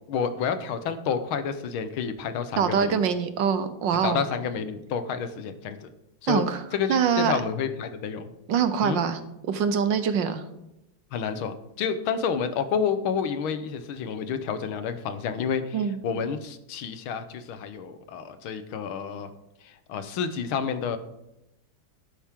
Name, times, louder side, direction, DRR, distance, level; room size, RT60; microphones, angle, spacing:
voice 1, 0.1-3.0 3.9-5.9 6.2-6.4 6.7-8.3 8.8-9.0 11.1-19.3 19.6-21.0, left 6 dB, 80° left, 10 dB, 1.8 m, -29 dB
voice 2, 2.6-4.2 6.3-6.6 6.9-7.3 8.5-9.2 9.5-10.4 15.7-16.0, right 7 dB, 65° right, 10 dB, 1.4 m, -24 dB
13.0 x 10.5 x 3.7 m, 0.88 s
omnidirectional pair, 2.3 m